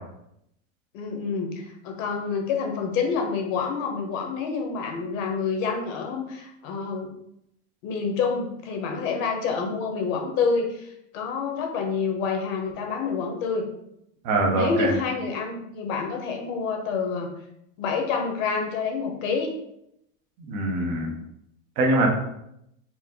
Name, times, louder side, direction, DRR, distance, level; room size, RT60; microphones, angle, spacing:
voice 1, 0.9-7.1 7.8-13.7 14.5-17.3 17.8-19.5, left 5 dB, 65° left, 3 dB, 1.1 m, -28 dB
voice 2, 14.2-14.9 20.4-21.1 21.8-22.1, right 2 dB, 20° right, 0 dB, 0.3 m, -23 dB
4.4 x 2.5 x 3.6 m, 0.78 s
supercardioid pair, 165°, 42 cm